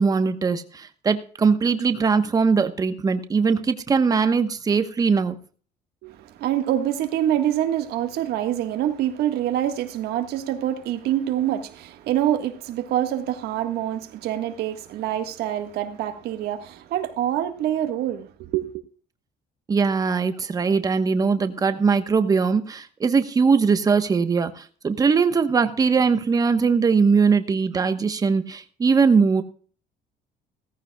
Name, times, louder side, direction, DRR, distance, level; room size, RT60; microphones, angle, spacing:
voice 1, 0.0-5.3 19.7-29.4, right 5 dB, 20° right, 1.1 m, -21 dB
voice 2, 6.0-18.7, right 11 dB, 80° right, 1.6 m, -26 dB
17.0 x 15.0 x 2.3 m
cardioid pair, 165°, 16 cm